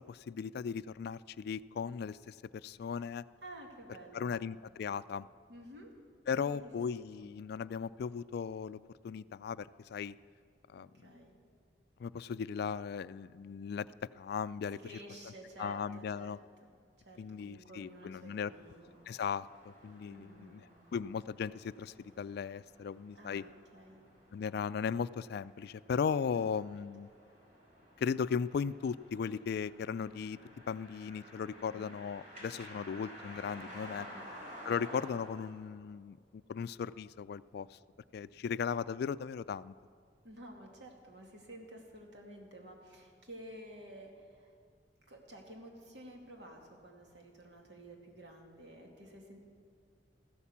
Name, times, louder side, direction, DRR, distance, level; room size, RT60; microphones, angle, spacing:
voice 1, 0.0-3.3 4.1-5.3 6.3-8.8 9.0-10.2 10.7-10.9 12.0-13.9 14.2-14.8 15.6-16.4 17.2-18.5 19.1-20.6 20.9-23.5 24.3-27.1 28.0-30.4 30.7-34.1 34.6-36.2 36.5-37.8 38.1-39.7, left 6 dB, 60° left, 17 dB, 0.3 m, -37 dB
voice 2, 3.4-4.4 5.5-5.9 6.3-6.7 7.0-7.3 10.8-11.3 14.7-16.4 16.6-16.7 17.0-18.9 20.1-20.7 23.1-24.0 26.3-26.8 31.7-32.0 33.6-34.2 40.2-44.5 45.1-49.4, right 1 dB, 70° right, 1 dB, 2.5 m, -52 dB
sound 1, 17.8-35.5, equal, 45° right, 4.4 m, -53 dB
14.5 x 12.5 x 7.2 m, 2.1 s
head